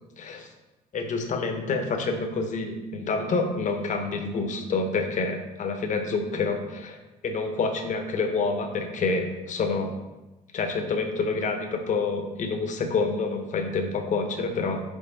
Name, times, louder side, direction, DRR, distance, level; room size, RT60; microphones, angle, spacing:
voice 1, 0.2-0.5 0.9-7.0 7.2-10.0 10.5-14.8, left 4 dB, 45° left, 5 dB, 1.0 m, -28 dB
5.6 x 3.8 x 5.4 m, 1.0 s
cardioid pair, 110°, 17 cm